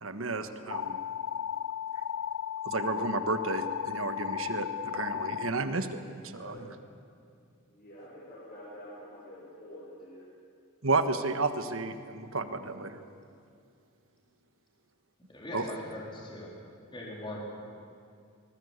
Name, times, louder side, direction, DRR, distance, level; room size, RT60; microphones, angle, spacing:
voice 1, 0.0-1.0 2.6-6.0 6.3-6.6 10.8-13.0 15.5-15.7, right 3 dB, 70° right, 9 dB, 1.5 m, -32 dB
sound 1, 0.7-5.5, left 9 dB, 90° left, 0.5 m, -35 dB
voice 2, 6.3-6.6 7.7-10.2, left 1 dB, 45° left, -7 dB, 5.9 m, -47 dB
voice 3, 15.3-16.5 16.9-17.4, left 1 dB, 25° left, -3 dB, 4.1 m, -40 dB
25.0 x 20.0 x 8.2 m, 2.4 s
head